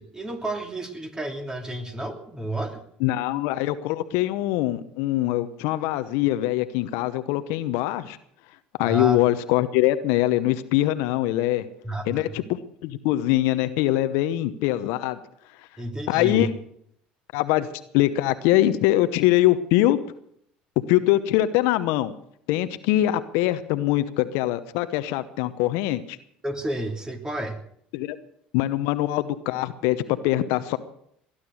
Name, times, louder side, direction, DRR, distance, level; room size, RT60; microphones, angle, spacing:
voice 1, 0.0-2.8 8.8-9.2 11.8-12.3 15.8-16.5 26.4-27.6, right 1 dB, 15° right, 5 dB, 3.0 m, -31 dB
voice 2, 3.0-8.2 8.8-11.7 12.1-15.2 16.1-16.5 17.3-17.7 17.9-20.0 20.9-22.1 22.5-26.2 27.9-28.2 28.5-30.8, left 15 dB, 70° left, 12 dB, 0.9 m, -23 dB
19.0 x 11.5 x 6.5 m, 0.69 s
hypercardioid pair, 70°, 5 cm